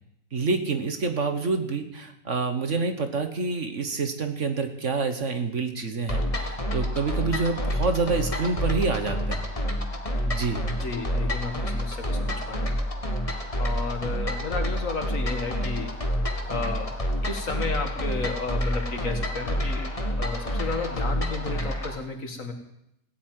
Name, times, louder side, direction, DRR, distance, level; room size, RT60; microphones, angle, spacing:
voice 1, 0.3-9.5 10.2-10.6, right 4 dB, 45° right, 7 dB, 1.5 m, -27 dB
sound 1, 6.1-22.0, equal, 20° left, 1.7 m, -28 dB
voice 2, 10.8-12.7 13.6-16.0 16.5-22.5, left 4 dB, 50° left, 4 dB, 2.3 m, -33 dB
17.0 x 8.5 x 9.5 m, 0.81 s
omnidirectional pair, 1.8 m